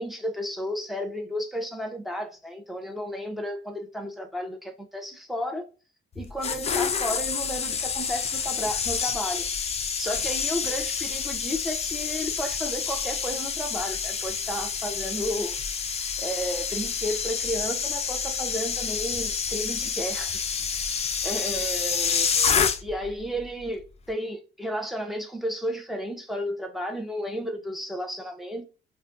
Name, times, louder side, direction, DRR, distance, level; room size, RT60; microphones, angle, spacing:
voice 1, 0.0-5.6 6.2-9.4 10.0-15.5 16.2-20.4 21.2-22.5 22.8-23.8 24.1-28.6, equal, ahead, 0.6 m, -33 dB
sound 1, 6.2-23.1 23.4-23.7, left 6 dB, 30° left, 0.4 m, -28 dB
2.3 x 2.2 x 2.6 m
cardioid pair, 90°, 20 cm